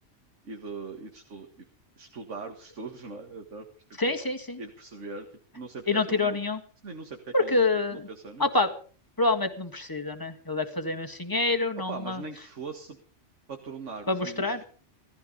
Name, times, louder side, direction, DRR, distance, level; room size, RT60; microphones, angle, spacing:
voice 1, 0.4-1.7 2.0-4.2 4.6-5.3 5.5-6.4 6.8-8.5 11.9-13.0 13.5-14.6, right 4 dB, 75° right, 4 dB, 2.1 m, -40 dB
voice 2, 4.0-4.6 5.9-6.6 7.3-8.1 8.4-8.7 9.2-12.2 14.1-14.6, left 3 dB, 15° left, 6 dB, 1.8 m, -27 dB
17.5 x 14.5 x 5.3 m, 0.42 s
omnidirectional pair, 1.3 m